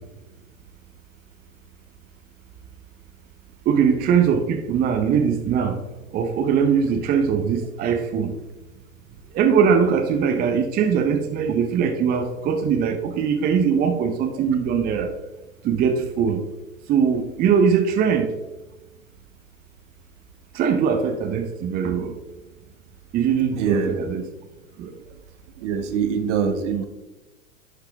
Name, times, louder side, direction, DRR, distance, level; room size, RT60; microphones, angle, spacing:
voice 1, 3.7-5.8 6.1-8.3 9.3-15.1 15.6-16.4 16.9-18.3 20.5-22.2 23.1-24.2 24.8-25.0, right 7 dB, 20° right, 5 dB, 0.6 m, -21 dB
voice 2, 23.6-24.0 25.6-26.8, right 6 dB, 55° right, 8 dB, 1.1 m, -23 dB
10.5 x 4.8 x 3.3 m, 1.1 s
figure-of-eight pair, 95°, 44 cm